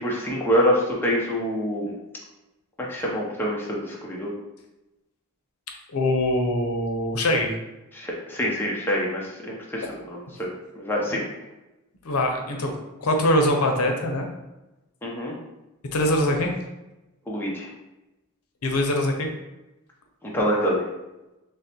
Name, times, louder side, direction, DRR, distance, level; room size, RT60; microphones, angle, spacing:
voice 1, 0.0-2.0 2.8-4.3 7.9-10.5 10.7-11.2 15.0-15.3 17.3-17.7 20.2-20.9, equal, 10° left, -4 dB, 0.6 m, -26 dB
voice 2, 5.9-7.5 9.8-10.0 12.0-12.7 13.0-14.3 15.9-16.5 18.6-19.3, left 1 dB, 80° left, 3 dB, 0.7 m, -23 dB
6.3 x 2.1 x 2.9 m, 1.0 s
head